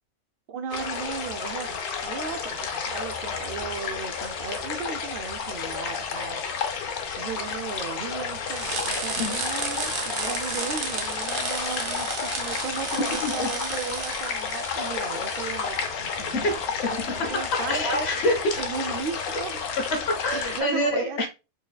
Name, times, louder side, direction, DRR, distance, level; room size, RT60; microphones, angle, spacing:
voice 1, 0.5-16.5 16.9-18.1 18.6-19.6 20.3-21.3, right 6 dB, 85° right, 0.4 m, -36 dB
sound 1, 0.7-20.6, left 6 dB, 90° left, 1.2 m, -31 dB
sound 2, 8.5-15.7, right 4 dB, 50° right, 0.7 m, -33 dB
voice 2, 16.3-18.6 19.9-21.3, left 1 dB, 55° left, 0.8 m, -27 dB
4.7 x 2.7 x 2.2 m
omnidirectional pair, 1.5 m